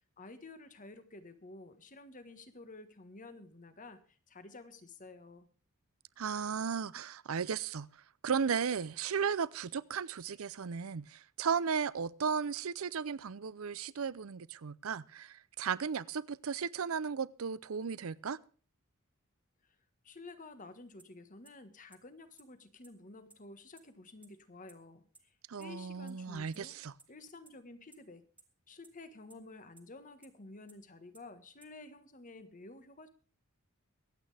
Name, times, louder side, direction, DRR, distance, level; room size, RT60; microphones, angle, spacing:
voice 1, 0.2-5.5 20.0-26.8 27.1-28.2 28.7-33.1, left 2 dB, 40° left, 1.5 m, -52 dB
voice 2, 6.2-7.9 8.2-18.4 25.5-26.9, right 6 dB, 75° right, 0.6 m, -35 dB
sound 1, 21.0-21.1 21.4-21.5 21.9-22.0 22.4-22.5 22.8-22.9 23.3-23.4 23.8-23.9 24.2-24.3 24.7-24.8 25.1-25.2 25.6-25.7 26.1-26.2 26.5-26.6 27.0-27.1 27.4-27.5 27.9-28.0 28.4-28.5 28.8-28.9 29.3-29.4 29.8-29.9 30.2-30.3 30.7-30.8 31.1-31.2 31.6-31.7, right 3 dB, 5° right, 2.0 m, -57 dB
23.5 x 9.0 x 3.4 m
head